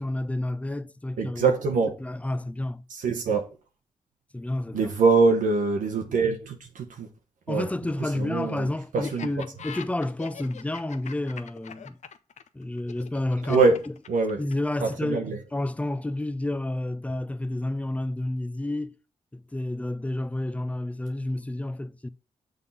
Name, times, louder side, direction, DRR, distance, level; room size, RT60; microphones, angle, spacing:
voice 1, 0.0-1.5 2.0-2.8 4.3-4.9 7.5-12.0 12.5-13.7 14.4-19.0 19.3-22.1, left 1 dB, 10° left, 0.4 m, -30 dB
voice 2, 1.2-1.9 2.9-3.4 4.7-7.1 7.5-7.7 8.2-8.7 8.9-9.3 13.5-13.8 14.1-14.4 14.8-15.4, right 4 dB, 90° right, 0.9 m, -23 dB
Laughter, 9.0-14.8, left 7 dB, 65° left, 0.6 m, -42 dB
6.4 x 3.7 x 5.4 m
cardioid pair, 65°, 13 cm